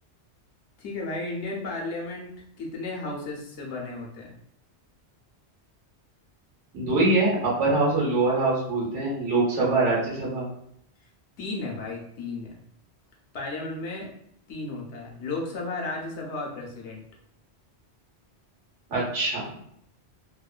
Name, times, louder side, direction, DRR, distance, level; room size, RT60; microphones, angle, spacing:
voice 1, 0.8-2.3 2.6-4.3 11.4-12.6 13.3-14.1 14.5-17.0, left 2 dB, 75° left, -1 dB, 1.0 m, -34 dB
voice 2, 6.7-10.5 18.9-19.4, right 2 dB, 85° right, -5 dB, 1.2 m, -23 dB
3.0 x 2.1 x 2.3 m, 0.72 s
omnidirectional pair, 1.2 m